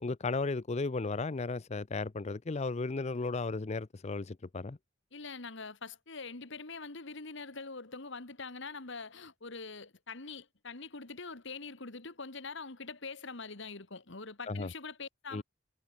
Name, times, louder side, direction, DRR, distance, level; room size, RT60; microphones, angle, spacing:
voice 1, 0.0-4.8 14.5-14.7 15.3-15.4, left 3 dB, 35° left, 0.5 m, -35 dB
voice 2, 5.1-15.4, left 4 dB, 65° left, 2.1 m, -44 dB
head